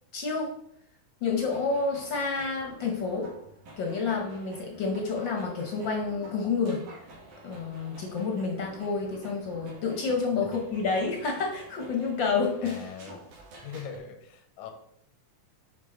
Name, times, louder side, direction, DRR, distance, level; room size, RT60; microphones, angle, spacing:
voice 1, 0.1-0.6 1.2-3.3 3.8-6.9 7.4-12.8, left 4 dB, 65° left, 2 dB, 1.2 m, -29 dB
sound 1, 1.2-14.0, right 2 dB, 90° right, 3.4 m, -49 dB
voice 2, 12.6-13.2 13.6-14.7, left 7 dB, 90° left, 7 dB, 2.5 m, -41 dB
10.5 x 4.0 x 3.8 m, 0.71 s
omnidirectional pair, 3.5 m